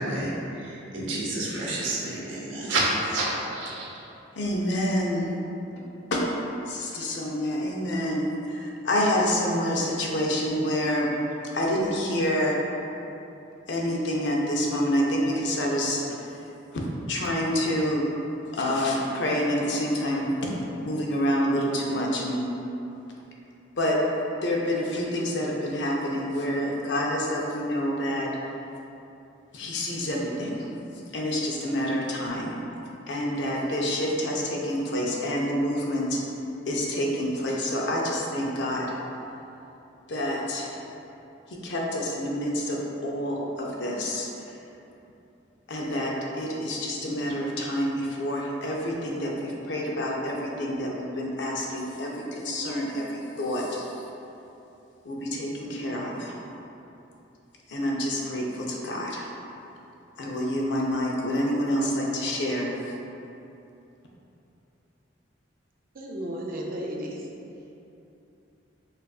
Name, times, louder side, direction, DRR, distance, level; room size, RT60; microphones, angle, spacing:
voice 1, 0.0-3.8, right 2 dB, 75° right, -5 dB, 0.7 m, -29 dB
voice 2, 4.4-5.3 6.1-6.2 6.7-11.1 11.5-12.6 13.7-16.2 16.7-16.8 17.1-18.1 18.5-20.5 20.8-22.5 23.8-24.0 24.4-28.3 29.5-30.7 31.1-32.5 33.1-36.2 36.7-38.9 40.1-40.8 41.5-44.3 45.7-54.0 55.0-56.4 57.7-59.3 60.2-62.7, equal, 65° left, -2 dB, 0.5 m, -27 dB
voice 3, 65.9-67.3, equal, 50° right, -1 dB, 0.4 m, -34 dB
4.8 x 2.4 x 2.3 m, 2.8 s
head